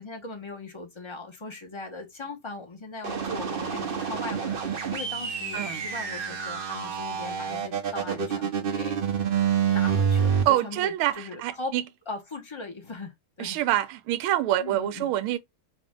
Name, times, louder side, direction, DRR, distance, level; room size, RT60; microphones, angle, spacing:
voice 1, 0.0-9.3 9.7-11.7 12.1-13.8 14.6-15.1, left 3 dB, 20° left, 0.7 m, -39 dB
sound 1, 3.0-10.4, right 7 dB, 65° right, 0.5 m, -27 dB
voice 2, 5.5-5.9 10.5-11.1 11.4-11.8 13.4-15.4, right 13 dB, 85° right, 1.5 m, -26 dB
4.9 x 2.6 x 3.6 m
omnidirectional pair, 2.3 m